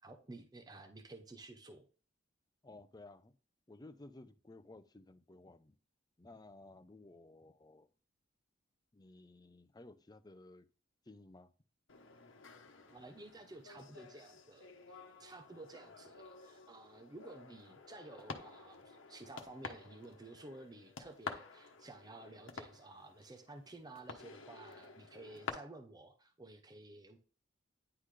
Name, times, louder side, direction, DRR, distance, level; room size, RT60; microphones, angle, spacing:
voice 1, 0.0-1.9 12.9-14.7 15.2-27.2, right 2 dB, 20° right, 0.7 m, -53 dB
voice 2, 2.6-3.3 3.7-5.8 6.2-7.9 8.9-10.7 11.0-11.5, left 2 dB, 20° left, 0.6 m, -56 dB
sound 1, 11.9-25.5, left 4 dB, 75° left, 1.1 m, -51 dB
10.0 x 3.9 x 3.3 m
head